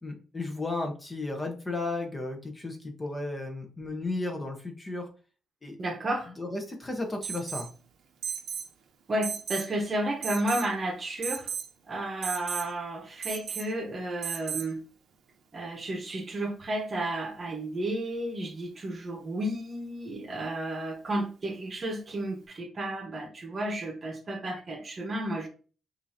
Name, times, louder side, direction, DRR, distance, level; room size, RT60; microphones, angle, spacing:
voice 1, 0.0-5.1 5.6-5.8 6.4-7.7, left 2 dB, 20° left, 0.9 m, -34 dB
voice 2, 5.8-6.3 9.1-11.5 11.9-14.8 15.5-25.5, right 1 dB, 35° right, 1.0 m, -32 dB
Alarm, 7.2-7.7 8.2-8.7 9.2-9.7 10.2-10.7 11.2-11.7 12.2-12.7 13.2-13.7 14.2-14.7, right 7 dB, 70° right, 0.8 m, -35 dB
5.4 x 2.7 x 2.8 m
cardioid pair, 110°, 0 cm